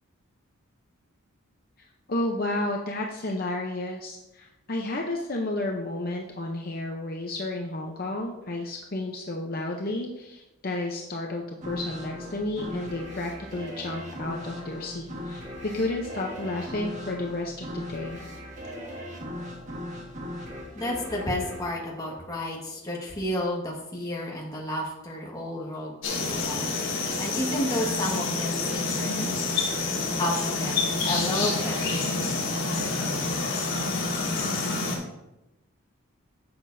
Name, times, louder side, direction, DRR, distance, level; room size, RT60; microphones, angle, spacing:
voice 1, 1.8-18.2, left 2 dB, 45° left, 0 dB, 0.7 m, -32 dB
sound 1, 11.6-22.8, left 1 dB, 35° right, 1.4 m, -39 dB
voice 2, 20.7-29.4 30.2-30.8 31.0-32.0, left 1 dB, 15° left, -2 dB, 1.6 m, -32 dB
sound 2, 26.0-35.0, left 3 dB, 60° left, 2.8 m, -28 dB
11.5 x 7.6 x 2.7 m, 0.95 s
head